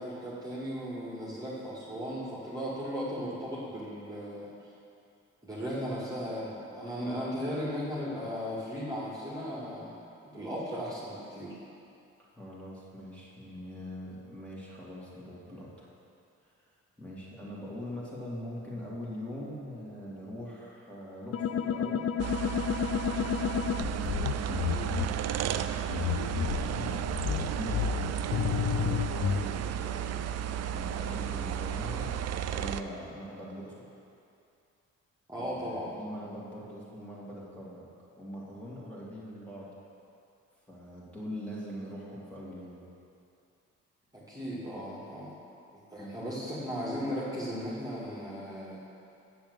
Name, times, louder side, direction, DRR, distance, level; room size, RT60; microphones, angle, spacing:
voice 1, 0.0-4.5 5.4-9.9 10.2-11.6 35.3-35.9 44.1-45.4 45.7-48.8, equal, 10° right, -8 dB, 2.3 m, -36 dB
voice 2, 12.3-15.9 16.6-16.7 17.0-22.2 23.2-26.0 26.6-30.3 30.7-33.9 35.4-37.9 38.2-39.7 40.7-42.9 46.0-46.1, equal, 5° left, -7 dB, 2.6 m, -43 dB
sound 1, 21.3-25.1 25.9-29.5, left 8 dB, 50° left, 0.5 m, -31 dB
sound 2, 22.2-32.8, right 9 dB, 55° right, 0.5 m, -33 dB
7.0 x 7.0 x 8.1 m, 2.6 s
cardioid pair, 90°, 30 cm